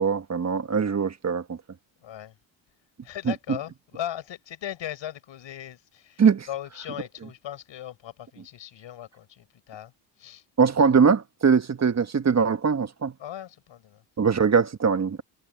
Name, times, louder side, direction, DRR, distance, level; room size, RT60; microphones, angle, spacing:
voice 1, 0.0-1.6 3.2-3.6 6.2-6.5 10.6-13.1 14.2-15.2, right 6 dB, 35° right, 1.6 m, -22 dB
voice 2, 2.0-2.3 3.0-9.9 10.2-10.4 13.2-14.0, left 11 dB, 65° left, 7.2 m, -38 dB
supercardioid pair, 70°, 48 cm